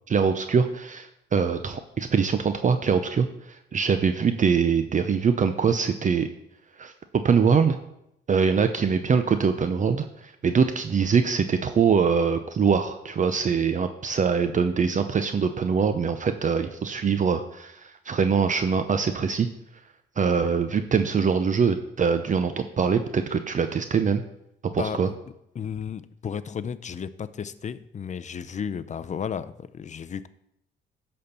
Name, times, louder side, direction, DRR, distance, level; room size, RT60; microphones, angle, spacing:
voice 1, 0.1-6.3 6.8-6.9 7.2-7.8 8.3-19.5 20.2-24.2 24.7-25.1, right 6 dB, 40° right, 9 dB, 0.7 m, -23 dB
voice 2, 24.8-25.2 25.5-30.3, left 7 dB, 35° left, 13 dB, 0.6 m, -33 dB
11.0 x 4.4 x 6.8 m, 0.80 s
cardioid pair, 90°, 20 cm